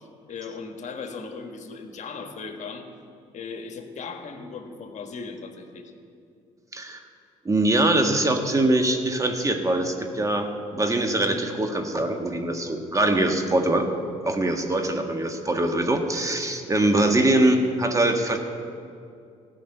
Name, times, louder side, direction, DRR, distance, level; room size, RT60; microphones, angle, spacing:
voice 1, 0.3-2.9 3.3-5.9, left 4 dB, 55° left, 5 dB, 1.5 m, -37 dB
voice 2, 7.4-13.9 14.2-18.4, right 1 dB, 20° right, 4 dB, 1.7 m, -23 dB
14.0 x 6.3 x 9.3 m, 2.4 s
supercardioid pair, 65°, 15 cm